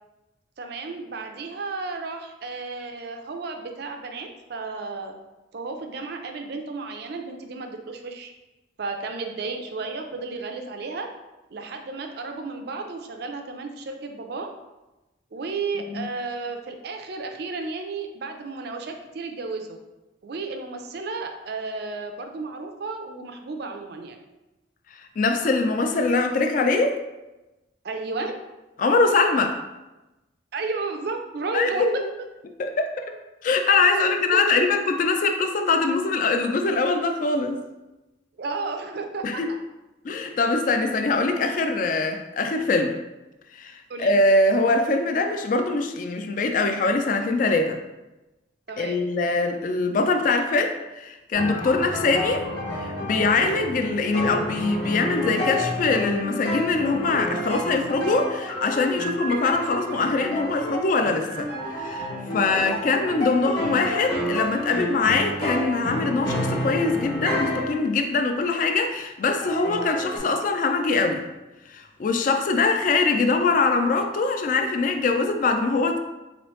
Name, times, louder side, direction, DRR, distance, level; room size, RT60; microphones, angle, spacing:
voice 1, 0.6-5.1 5.5-8.3 8.8-11.1 11.5-14.5 15.3-19.8 20.2-24.2 27.8-28.4 30.5-31.8 33.9-34.1 38.4-39.4 43.9-44.1 48.7-49.0 62.4-62.7, right 3 dB, 55° right, 5 dB, 0.4 m, -33 dB
voice 2, 25.2-27.0 28.8-29.6 31.5-32.1 32.6-33.1 33.4-37.6 39.2-39.5 40.0-43.0 43.5-47.8 48.8-52.5 52.8-62.1 62.3-71.2 71.7-76.0, left 3 dB, 45° left, 6 dB, 0.3 m, -23 dB
sound 1, 51.3-67.8 68.5-68.6 69.4-70.2, left 1 dB, 60° left, 1.2 m, -29 dB
3.9 x 3.1 x 3.0 m, 1.0 s
head